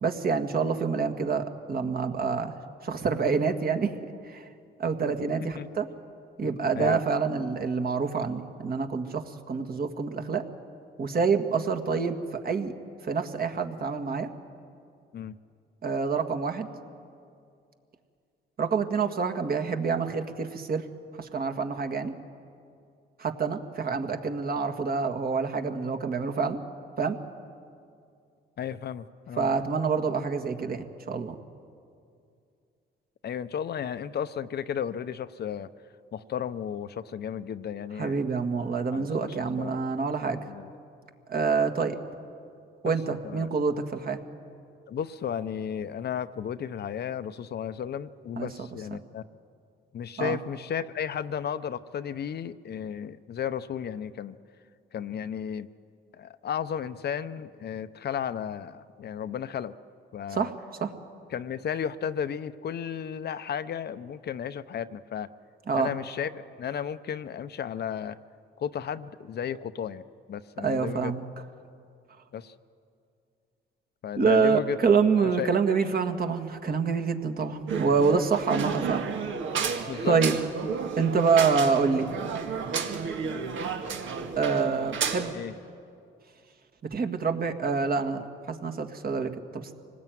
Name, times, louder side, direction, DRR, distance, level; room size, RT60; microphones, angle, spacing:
voice 1, 0.0-2.6 2.8-3.9 4.2-4.4 4.8-5.9 6.4-10.5 11.0-12.7 13.0-14.3 15.8-16.7 18.6-20.9 21.2-22.1 23.2-26.6 27.0-27.2 29.4-31.4 38.0-40.4 41.3-42.0 42.8-44.2 48.4-48.5 50.2-50.4 60.3-60.5 60.8-60.9 65.7-65.9 70.6-71.2 74.2-79.0 80.1-80.4 81.0-82.1 84.4-85.4 86.9-89.7, right 5 dB, 50° right, 6 dB, 1.9 m, -27 dB
voice 2, 28.6-29.5 33.2-35.7 36.1-38.2 38.9-39.8 40.4-40.7 42.8-42.9 43.2-43.5 44.9-49.2 49.9-54.4 54.9-55.7 56.1-59.7 60.1-60.5 61.3-65.3 65.7-68.2 68.6-70.0 70.3-71.1 72.3-72.5 74.0-74.8 75.2-75.5 79.9-80.2 85.3-85.5, left 8 dB, 55° left, 12 dB, 0.8 m, -34 dB
sound 1, 77.7-85.3, right 6 dB, 75° right, 2.0 m, -32 dB
25.0 x 19.0 x 9.3 m, 2.4 s
cardioid pair, 90°, 20 cm